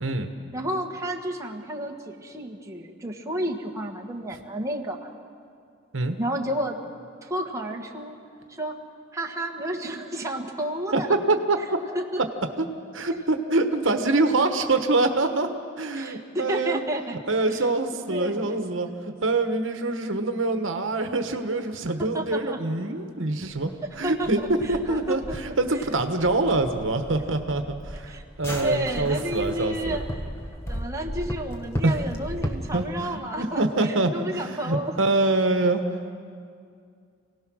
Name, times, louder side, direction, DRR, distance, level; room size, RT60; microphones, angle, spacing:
voice 1, 0.5-5.1 6.2-6.8 7.2-8.2 8.6-8.8 9.1-11.2 11.9-12.2 15.9-17.2 17.5-17.6 18.1-18.6 22.1-22.6 24.0-25.2 28.1-28.2 28.6-30.0 30.7-34.9, right 1 dB, 15° right, 0 dB, 1.5 m, -31 dB
voice 2, 10.9-11.6 12.6-15.5 15.8-16.8 17.3-30.0 31.8-32.0 32.7-35.8, right 2 dB, 65° right, 6 dB, 1.3 m, -25 dB
sound 1, 23.4-32.9, equal, 15° left, 1.6 m, -36 dB
28.0 x 18.0 x 6.3 m, 2.3 s
head